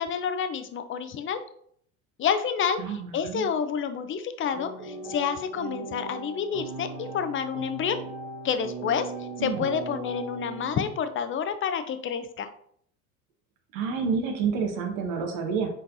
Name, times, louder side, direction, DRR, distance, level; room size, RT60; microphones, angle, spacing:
voice 1, 0.0-1.4 2.2-8.0 8.4-12.5, left 7 dB, 30° left, 9 dB, 0.5 m, -29 dB
voice 2, 2.8-3.5 9.4-9.7 13.7-15.7, right 5 dB, 75° right, 3 dB, 1.2 m, -29 dB
sound 1, 4.4-11.1, right 3 dB, 45° right, 1.5 m, -38 dB
4.5 x 3.9 x 2.6 m, 0.65 s
hypercardioid pair, 80°, 42 cm